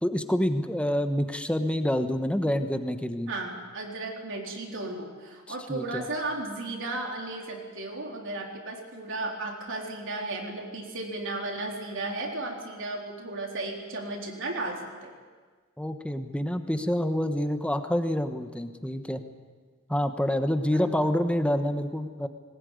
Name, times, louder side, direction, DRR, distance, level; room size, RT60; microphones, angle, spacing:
voice 1, 0.0-3.3 5.7-6.1 15.8-19.2 19.9-22.3, equal, 5° left, 8 dB, 1.1 m, -27 dB
voice 2, 3.3-15.2 20.7-21.1, right 2 dB, 60° right, 1 dB, 3.9 m, -35 dB
20.5 x 20.0 x 9.5 m, 1.5 s
head